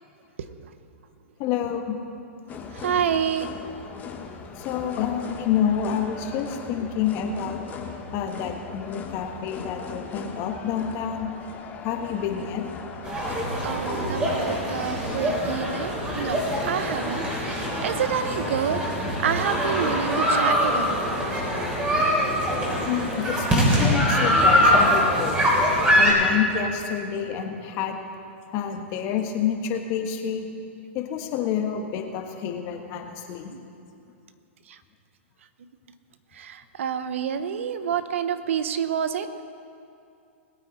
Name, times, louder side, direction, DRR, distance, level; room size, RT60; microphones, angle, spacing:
voice 1, 1.4-1.9 4.6-7.6 8.1-11.3 11.8-12.7 22.9-25.3 26.0-28.0 28.5-30.5 30.9-33.5, left 8 dB, 40° left, 4 dB, 1.5 m, -28 dB
sound 1, 2.5-21.7, left 5 dB, 25° left, 1.2 m, -39 dB
voice 2, 2.8-3.5 13.6-16.4 16.7-18.8 19.2-21.0 33.5-33.6 36.4-39.4, right 8 dB, 70° right, 11 dB, 0.9 m, -28 dB
sound 2, 13.0-26.1, equal, 15° right, 3.6 m, -23 dB
20.0 x 9.0 x 4.2 m, 2.5 s
hypercardioid pair, 125°, 7 cm